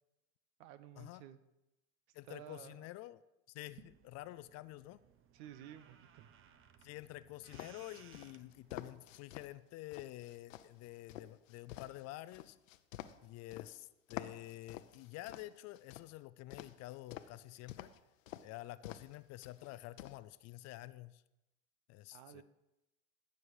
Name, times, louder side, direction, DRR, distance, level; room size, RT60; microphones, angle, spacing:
voice 1, 0.6-1.4 2.3-2.9 5.3-6.3 22.1-22.4, right 10 dB, 60° right, 13 dB, 1.0 m, -53 dB
voice 2, 2.1-3.2 3.5-5.0 6.8-12.6 13.2-17.9 18.4-21.2 21.9-22.4, left 17 dB, 45° left, 15 dB, 0.5 m, -49 dB
sound 1, 3.6-8.9, right 8 dB, 30° right, 1.0 m, -62 dB
sound 2, 7.5-9.5 9.9-13.7 14.1-16.1 16.5-17.4 17.7-18.0 18.3-18.4 18.8-19.2 19.4-20.2, left 12 dB, 85° left, 0.8 m, -48 dB
15.0 x 7.0 x 4.8 m, 0.94 s
hypercardioid pair, 110°, 38 cm